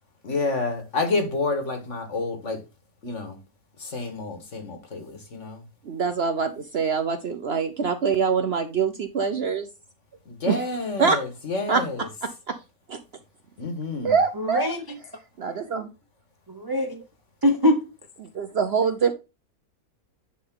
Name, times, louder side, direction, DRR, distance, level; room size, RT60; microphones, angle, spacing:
voice 1, 0.2-2.6 3.0-3.4 3.8-5.6 10.3-12.1 13.6-14.2, left 3 dB, 55° left, 1.9 m, -29 dB
voice 2, 5.8-9.7 10.4-10.6 11.0-11.2 11.7-11.8 12.2-12.6 12.9-13.0 14.0-14.7 15.4-15.9 18.2-19.1, right 5 dB, 55° right, 0.8 m, -24 dB
voice 3, 14.4-15.0 16.5-17.0 17.4-17.8, left 1 dB, 25° right, 0.5 m, -23 dB
10.0 x 3.7 x 3.7 m
omnidirectional pair, 1.6 m